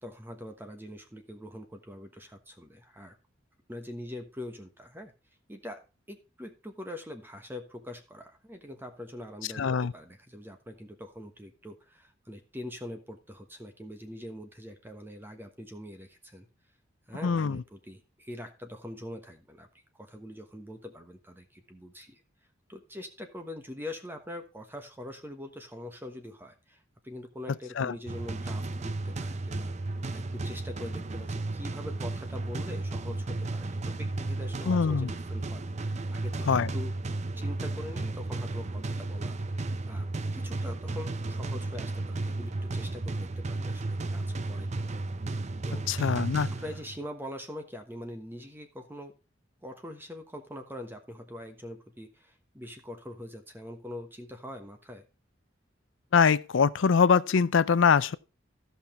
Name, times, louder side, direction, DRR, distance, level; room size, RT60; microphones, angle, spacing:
voice 1, 0.0-3.1 3.7-5.1 5.5-5.8 6.1-16.5 17.1-19.7 20.0-22.2 22.7-36.5 36.7-36.9 37.3-40.1 40.3-44.9 45.6-45.9 46.5-49.1 49.6-55.0, left 1 dB, 10° right, 1.2 m, -43 dB
voice 2, 9.6-9.9 17.2-17.6 27.8-27.9 34.7-35.1 36.4-36.7 45.9-46.5 56.1-58.2, left 6 dB, 75° left, 0.5 m, -23 dB
sound 1, 28.1-47.0, right 2 dB, 35° right, 0.6 m, -34 dB
14.0 x 5.6 x 4.4 m
head